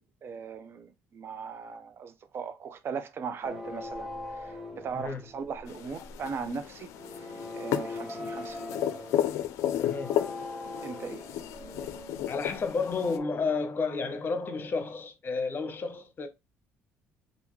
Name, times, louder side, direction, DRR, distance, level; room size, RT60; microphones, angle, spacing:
voice 1, 0.0-6.9 7.2-8.7 10.8-11.3, right 6 dB, 50° right, 0.5 m, -39 dB
sound 1, 3.4-13.0, left 2 dB, 5° right, 1.1 m, -41 dB
sound 2, 5.7-13.2, left 11 dB, 70° left, 0.4 m, -33 dB
voice 2, 9.8-10.3 12.3-16.3, left 4 dB, 40° left, 0.8 m, -31 dB
3.4 x 2.6 x 3.1 m
supercardioid pair, 70°, 5 cm